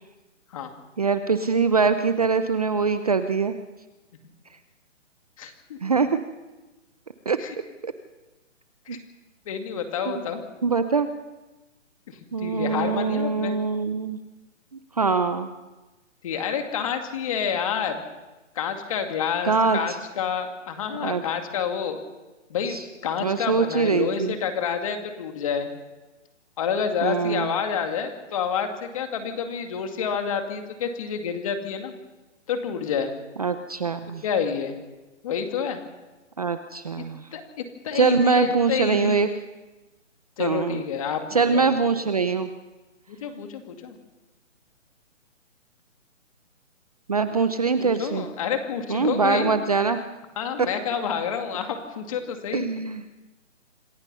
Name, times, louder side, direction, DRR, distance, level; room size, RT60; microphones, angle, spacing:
voice 1, 1.0-3.6 5.8-6.2 7.3-7.4 7.8-7.9 8.9-9.0 10.1-10.2 10.6-11.1 12.3-14.2 14.7-15.5 19.4-20.0 21.0-21.2 22.7-22.8 23.2-24.3 27.0-27.5 33.4-34.2 36.4-37.3 37.9-39.3 40.4-40.8 41.3-42.5 47.1-48.2 48.9-50.0 52.5-53.0, right 5 dB, 30° right, 10 dB, 0.7 m, -23 dB
voice 2, 5.4-5.8 7.4-7.5 8.9-9.0 9.5-10.4 12.1-13.6 16.2-18.0 18.6-22.0 22.5-22.8 23.0-25.7 26.6-31.9 32.5-33.1 34.2-34.7 35.2-35.8 37.0-37.1 37.3-37.4 37.8-39.2 40.4-41.7 43.1-44.0 47.8-49.5 50.4-52.7, left 7 dB, 25° left, 5 dB, 2.3 m, -28 dB
27.0 x 19.5 x 5.6 m, 1.1 s
hypercardioid pair, 165°, 38 cm